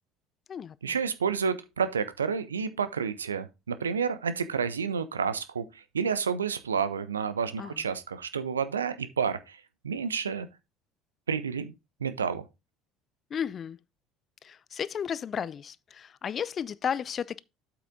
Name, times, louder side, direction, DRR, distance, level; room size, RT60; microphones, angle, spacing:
voice 1, 0.8-9.6 9.8-10.5 11.3-11.7 12.0-12.4, right 6 dB, 80° right, 0.5 m, -30 dB
voice 2, 13.3-13.8 14.4-17.4, left 7 dB, 35° left, 0.4 m, -33 dB
8.3 x 5.8 x 3.6 m
figure-of-eight pair, 60°, 0 cm